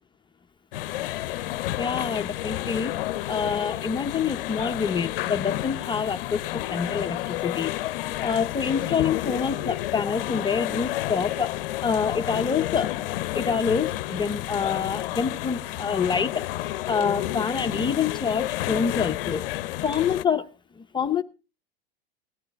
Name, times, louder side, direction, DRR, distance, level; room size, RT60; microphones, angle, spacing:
sound 1, 0.7-20.2, left 15 dB, 65° left, 0.6 m, -30 dB
voice 1, 1.8-3.0 3.3-7.7 8.2-11.5 11.8-16.5 16.9-19.5 19.8-20.5 20.8-21.2, left 6 dB, 15° left, 0.7 m, -27 dB
17.5 x 11.0 x 3.4 m
hypercardioid pair, 100°, 30 cm